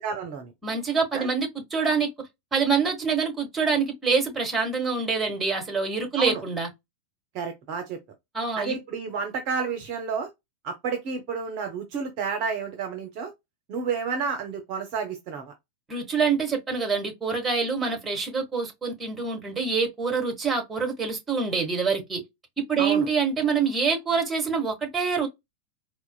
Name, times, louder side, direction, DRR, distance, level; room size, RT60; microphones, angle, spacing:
voice 1, 0.0-0.5 1.1-1.3 6.2-6.4 7.3-8.0 8.5-10.3 10.6-13.3 13.7-15.5 22.8-23.1, right 5 dB, 45° right, 0.7 m, -30 dB
voice 2, 0.6-2.1 2.5-6.7 8.3-8.8 15.9-22.2 22.7-25.3, right 5 dB, 15° right, 1.2 m, -26 dB
4.2 x 2.1 x 2.3 m
figure-of-eight pair, 90°, 0 cm